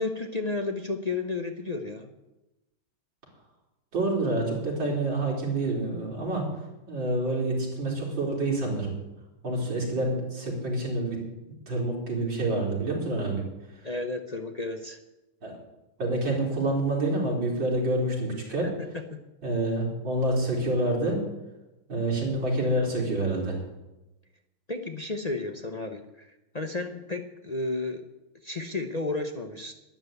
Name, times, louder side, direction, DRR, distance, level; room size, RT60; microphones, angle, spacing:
voice 1, 0.0-2.1 13.8-15.0 18.6-18.7 24.7-26.3 26.5-28.0 28.4-29.7, left 3 dB, 40° left, 4 dB, 0.5 m, -32 dB
voice 2, 3.9-6.4 6.9-8.9 9.4-11.2 11.7-13.4 15.4-15.5 16.0-18.7 19.4-21.2 21.9-23.6, right 2 dB, 70° right, -2 dB, 4.8 m, -27 dB
12.5 x 10.5 x 8.1 m, 0.98 s
omnidirectional pair, 2.1 m